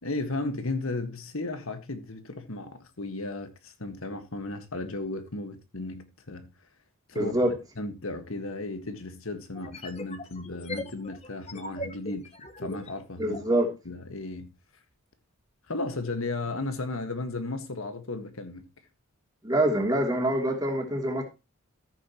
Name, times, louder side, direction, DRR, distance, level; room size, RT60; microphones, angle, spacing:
voice 1, 0.0-6.5 7.1-7.4 7.8-12.3 12.6-13.4 13.8-14.5 15.7-18.6, left 2 dB, 70° left, 1.7 m, -35 dB
voice 2, 7.1-7.6 13.2-13.7 19.4-21.2, right 1 dB, 15° right, 3.1 m, -25 dB
sound 1, 9.5-13.5, equal, 30° left, 1.4 m, -40 dB
14.0 x 9.0 x 3.0 m
head